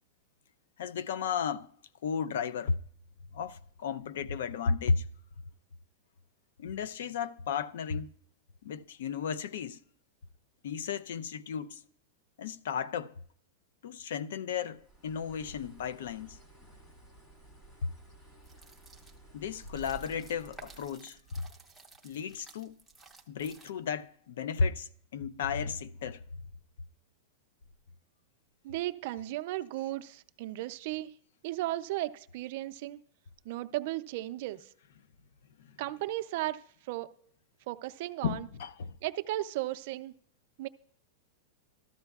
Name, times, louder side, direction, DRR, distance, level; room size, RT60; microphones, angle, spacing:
voice 1, 0.8-1.7 2.0-2.8 3.3-5.1 6.6-8.1 8.6-9.8 10.6-11.8 12.4-13.2 13.8-16.4 17.8-17.9 19.3-21.4 22.0-22.7 23.3-26.2 35.6-35.8 38.2-39.0, left 6 dB, 75° left, 0.4 m, -34 dB
Bird, 14.7-21.0, right 2 dB, 25° left, 1.8 m, -54 dB
sound 1, 18.4-24.0, right 3 dB, ahead, 0.7 m, -55 dB
voice 2, 28.6-31.1 31.4-33.0 33.5-34.7 35.8-36.6 36.9-37.1 37.7-38.5 39.0-40.1 40.6-40.7, right 16 dB, 50° right, 0.4 m, -35 dB
13.5 x 12.5 x 2.3 m
supercardioid pair, 165°, 0 cm